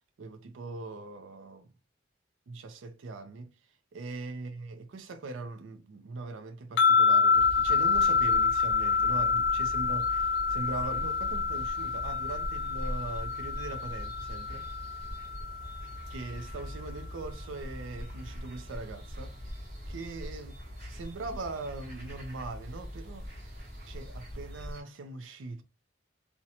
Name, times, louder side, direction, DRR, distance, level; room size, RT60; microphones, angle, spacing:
voice 1, 0.2-1.7 2.5-3.5 3.9-14.7 15.6-15.8 16.1-19.6 19.9-20.5 20.9-23.3 23.9-25.6, right 3 dB, 85° right, 0.4 m, -41 dB
sound 1, 6.8-16.0, left 5 dB, 70° left, 0.3 m, -27 dB
sound 2, 7.3-24.8, equal, 45° right, 1.0 m, -42 dB
2.6 x 2.1 x 2.7 m
head